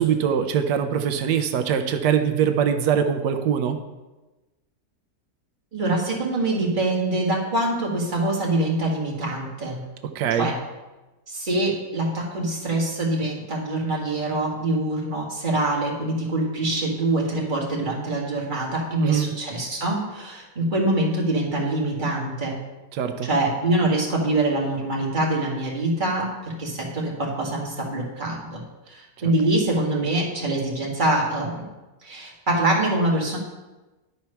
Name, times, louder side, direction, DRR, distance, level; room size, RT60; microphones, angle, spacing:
voice 1, 0.0-3.8 10.1-10.5 19.0-19.3 22.9-23.3, right 8 dB, 90° right, 7 dB, 1.2 m, -22 dB
voice 2, 5.7-9.8 10.3-10.5 11.3-22.6 23.2-28.6 28.9-31.7 32.0-33.4, right 2 dB, 30° right, -3 dB, 1.9 m, -24 dB
11.0 x 4.5 x 5.6 m, 1.1 s
omnidirectional pair, 1.8 m